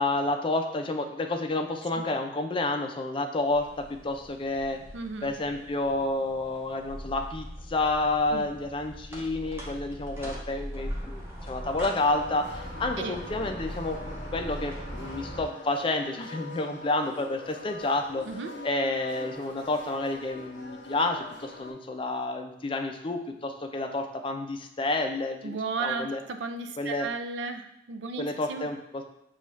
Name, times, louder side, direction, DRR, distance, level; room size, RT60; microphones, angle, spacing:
voice 1, 0.0-4.8 5.2-14.0 14.3-18.3 18.6-26.2 26.8-27.1 28.2-29.0, left 2 dB, 30° left, 5 dB, 0.4 m, -30 dB
sound 1, 3.5-15.4, equal, 15° right, 0.8 m, -43 dB
voice 2, 4.9-5.3 8.3-8.5 13.0-13.2 18.3-18.5 25.4-28.7, right 4 dB, 80° right, 7 dB, 0.4 m, -34 dB
sound 2, 6.8-15.0, equal, 10° left, 1.0 m, -43 dB
sound 3, 11.9-21.7, left 2 dB, 80° left, 0.6 m, -44 dB
6.7 x 2.3 x 3.1 m, 0.82 s
head